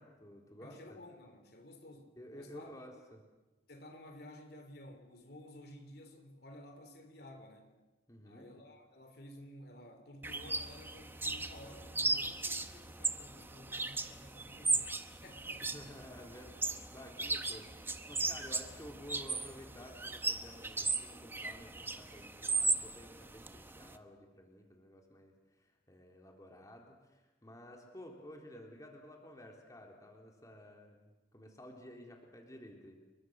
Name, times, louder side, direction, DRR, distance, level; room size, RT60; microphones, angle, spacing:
voice 1, 0.0-1.0 2.2-3.2 8.1-8.5 15.6-25.3 25.9-33.0, left 1 dB, 20° left, 1 dB, 3.7 m, -53 dB
voice 2, 0.6-2.7 3.7-7.8 8.2-14.9 15.2-15.7 18.3-18.5, left 1 dB, 60° left, 6 dB, 3.4 m, -53 dB
sound 1, 10.2-24.0, right 3 dB, 10° right, 1.0 m, -37 dB
30.0 x 23.0 x 6.5 m, 1.1 s
head